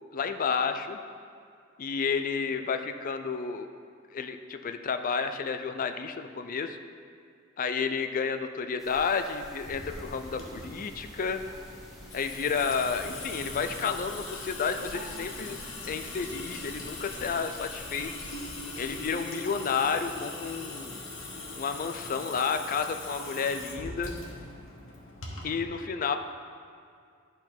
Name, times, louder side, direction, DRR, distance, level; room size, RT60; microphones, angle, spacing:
voice 1, 0.1-1.0 1.8-3.7 4.1-6.8 7.6-11.4 12.1-15.6 15.8-18.1 18.8-21.0 21.6-24.1 25.4-26.2, left 5 dB, 45° left, 8 dB, 0.4 m, -31 dB
sound 1, 8.8-19.0, equal, ahead, 1.4 m, -50 dB
Water tap faucet / Sink (filling or washing) / Drip, 9.7-25.6, left 2 dB, 70° left, 1.3 m, -41 dB
11.0 x 4.0 x 4.4 m, 2.3 s
head